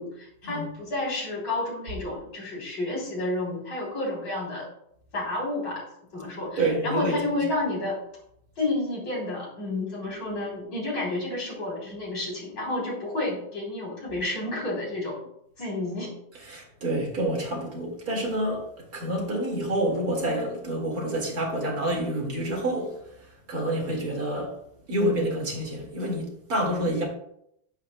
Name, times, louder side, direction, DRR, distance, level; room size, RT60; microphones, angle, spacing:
voice 1, 0.0-4.7 5.1-5.8 6.1-8.0 8.6-15.2 15.6-16.1, left 2 dB, 75° left, 4.3 m, -30 dB
voice 2, 6.6-7.4 16.5-18.6 18.9-22.9 23.5-24.5 24.9-27.0, right 1 dB, 50° right, 2.7 m, -28 dB
10.5 x 8.4 x 2.3 m
omnidirectional pair, 2.0 m